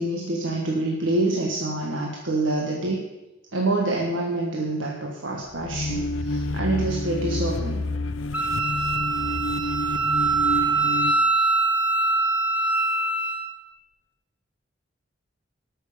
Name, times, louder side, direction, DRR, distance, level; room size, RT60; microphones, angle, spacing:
voice 1, 0.0-3.0 3.5-7.8, right 2 dB, 80° right, -1 dB, 1.6 m, -26 dB
sound 1, 5.5-11.1, left 2 dB, 75° left, 0.6 m, -29 dB
Wind instrument woodwind instrument, 8.3-13.5, right 3 dB, 5° right, 1.3 m, -23 dB
14.0 x 6.5 x 6.9 m, 1.0 s
head